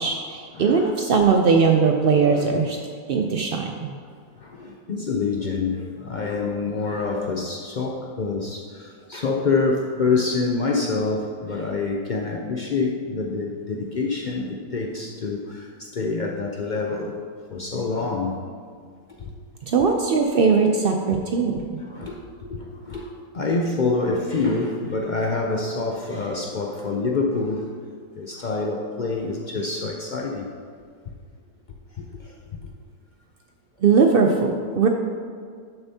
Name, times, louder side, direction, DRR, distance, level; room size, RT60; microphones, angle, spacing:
voice 1, 0.0-2.8 3.1-3.9 19.6-21.8 33.8-34.9, right 5 dB, 80° right, 3 dB, 0.5 m, -20 dB
voice 2, 0.6-0.9 2.3-2.4 4.4-17.2 17.5-18.4 18.8-18.9 19.2-19.3 21.9-27.7 28.2-30.5 31.9-32.7, left 3 dB, 75° left, 1 dB, 0.4 m, -26 dB
11.5 x 6.8 x 2.8 m, 2.1 s
omnidirectional pair, 1.6 m